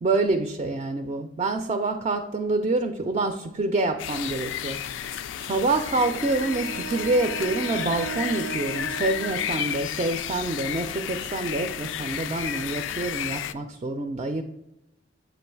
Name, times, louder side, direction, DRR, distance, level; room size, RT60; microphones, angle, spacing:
voice 1, 0.0-14.4, right 2 dB, 35° right, 7 dB, 0.3 m, -27 dB
sound 1, 4.0-13.5, left 10 dB, 85° left, 0.3 m, -32 dB
Wind instrument woodwind instrument, 5.9-10.1, right 6 dB, 90° right, 0.5 m, -37 dB
7.7 x 3.0 x 4.5 m, 0.92 s
head